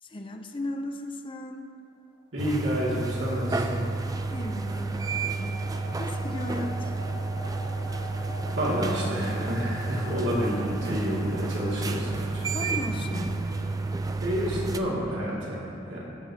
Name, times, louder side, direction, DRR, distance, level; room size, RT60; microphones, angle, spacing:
voice 1, 0.0-1.7 4.3-5.7 6.0-6.9 12.5-13.3, left 1 dB, 25° left, 5 dB, 0.6 m, -36 dB
voice 2, 2.3-3.9 8.6-13.6 14.2-16.1, equal, 80° right, -6 dB, 2.4 m, -30 dB
sound 1, 2.4-14.8, right 3 dB, 20° right, 0.3 m, -31 dB
sound 2, 3.0-13.5, left 1 dB, 55° left, 1.3 m, -44 dB
18.0 x 6.3 x 2.9 m, 2.5 s
head